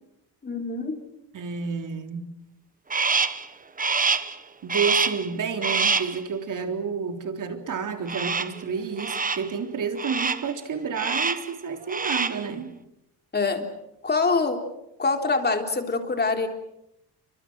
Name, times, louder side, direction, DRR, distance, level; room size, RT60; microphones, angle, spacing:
voice 1, 0.4-1.0 13.3-13.7 14.0-14.6 15.0-16.5, left 4 dB, 25° left, 5 dB, 3.7 m, -24 dB
voice 2, 1.3-2.2 4.6-12.7, right 5 dB, 50° right, 5 dB, 3.8 m, -30 dB
Crow, 2.9-3.5 3.8-4.4 4.7-5.3 5.6-6.2 8.1-8.6 9.0-9.5 10.0-10.5 10.9-11.5 11.8-12.5, right 4 dB, 20° right, 1.1 m, -25 dB
28.5 x 25.5 x 6.2 m, 0.81 s
cardioid pair, 120°, 40 cm